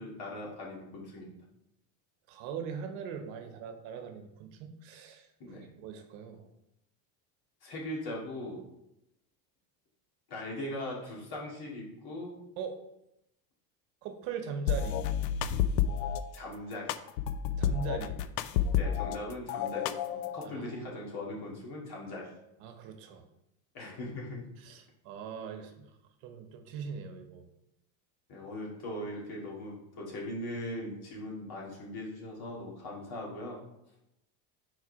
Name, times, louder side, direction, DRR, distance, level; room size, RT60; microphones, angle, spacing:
voice 1, 0.0-1.4 5.4-5.7 7.6-8.6 10.3-12.4 16.3-17.0 18.7-22.3 23.7-24.4 28.3-33.6, left 1 dB, 45° left, -3 dB, 2.4 m, -40 dB
voice 2, 2.3-6.5 12.6-12.7 14.0-15.0 17.6-18.2 20.4-20.8 22.6-23.2 24.6-25.9 26.2-27.4, right 6 dB, 60° right, 6 dB, 1.1 m, -40 dB
sound 1, 14.7-16.2 16.9-19.2 19.5-20.5, left 8 dB, 85° left, 0.6 m, -30 dB
4.8 x 4.6 x 4.7 m, 0.85 s
supercardioid pair, 100°, 50 cm